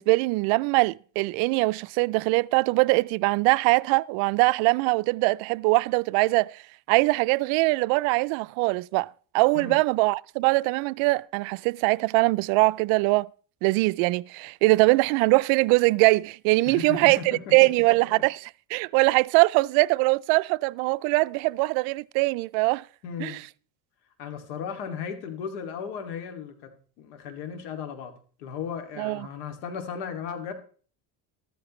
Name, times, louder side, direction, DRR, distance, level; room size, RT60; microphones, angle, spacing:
voice 1, 0.0-6.6 6.9-9.1 9.3-13.3 13.6-22.8 23.2-23.4 29.0-29.3, right 24 dB, 75° right, 0.5 m, -22 dB
voice 2, 16.7-17.7 23.0-23.4 24.2-28.1 28.4-30.5, left 7 dB, 85° left, 2.5 m, -36 dB
13.5 x 13.0 x 3.1 m
cardioid pair, 130°, 46 cm